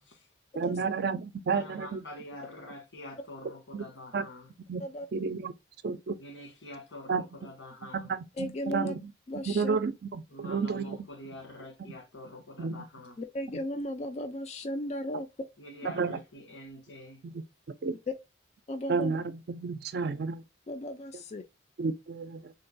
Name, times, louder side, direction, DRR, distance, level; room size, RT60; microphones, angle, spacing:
voice 1, 0.5-2.0 3.7-3.9 4.1-4.3 4.7-4.8 5.1-5.5 5.8-6.2 7.1-7.2 7.9-9.1 9.5-11.0 12.6-12.9 15.8-16.2 17.2-17.4 17.8-18.0 18.9-20.4 21.1-21.2 21.8-22.5, right 5 dB, 55° right, 0.4 m, -31 dB
voice 2, 1.5-4.5 6.2-8.1 10.3-13.2 15.6-17.2, left 1 dB, 85° left, 1.6 m, -46 dB
voice 3, 8.4-8.9 9.3-9.8 13.2-15.3 18.7-19.2 20.7-21.4, left 1 dB, 35° left, 0.3 m, -35 dB
3.7 x 2.2 x 2.5 m
head